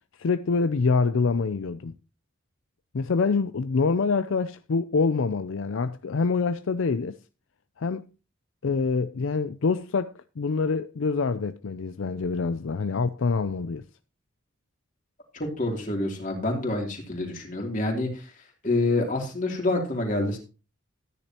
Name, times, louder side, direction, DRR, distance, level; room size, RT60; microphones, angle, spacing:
voice 1, 0.2-2.0 2.9-7.2 7.8-8.1 8.6-13.8, left 4 dB, 75° left, 0.5 m, -26 dB
voice 2, 15.3-18.3 18.6-20.4, left 2 dB, 40° left, 3.0 m, -27 dB
13.5 x 9.9 x 2.9 m
head